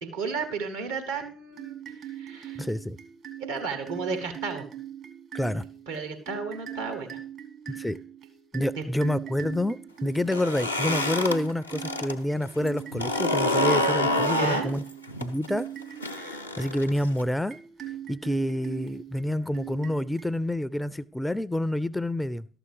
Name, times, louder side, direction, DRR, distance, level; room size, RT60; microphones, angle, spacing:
voice 1, 0.0-1.8 2.0-2.7 3.4-4.7 5.9-7.2 7.7-7.9 14.4-14.7, right 4 dB, 80° right, 1.5 m, -33 dB
sound 1, 1.5-20.7, right 11 dB, 50° right, 1.4 m, -41 dB
voice 2, 2.6-3.0 5.3-5.7 7.7-8.0 8.5-14.8 15.2-15.7 16.0-17.6 18.1-22.5, left 1 dB, 10° left, 0.4 m, -28 dB
sound 2, 10.2-12.1 12.5-17.2, left 1 dB, 90° left, 0.5 m, -27 dB
12.5 x 6.9 x 4.8 m
figure-of-eight pair, 45°, 0 cm